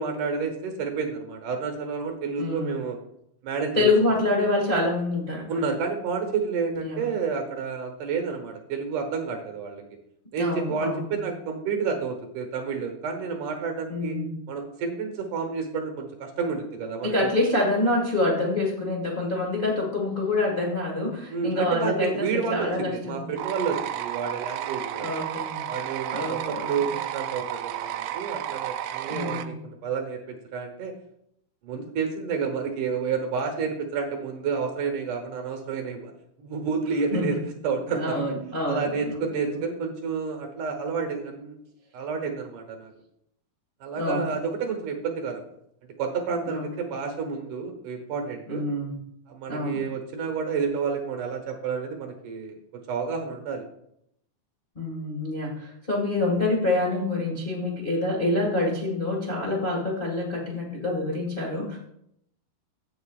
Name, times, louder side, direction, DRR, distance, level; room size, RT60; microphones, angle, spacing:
voice 1, 0.0-3.0 3.4-3.9 5.5-9.8 10.3-14.2 14.5-17.3 21.3-25.2 25.7-30.9 31.6-36.1 36.4-38.2 38.7-41.6 41.9-42.9 43.8-45.4 46.0-48.7 49.3-52.5 52.9-53.6, right 5 dB, 65° right, 4 dB, 2.3 m, -30 dB
voice 2, 2.4-2.8 3.7-5.6 6.8-7.0 10.4-11.1 13.9-14.3 17.0-23.3 25.0-25.6 26.1-26.9 29.1-29.5 37.1-37.3 37.9-39.1 39.5-39.6 43.9-44.2 46.5-46.6 48.5-49.0 49.5-49.8 54.7-61.8, left 2 dB, 65° left, -3 dB, 0.5 m, -26 dB
sound 1, 23.4-29.5, right 12 dB, 90° right, 2.5 m, -32 dB
16.0 x 7.0 x 2.4 m, 0.74 s
omnidirectional pair, 4.4 m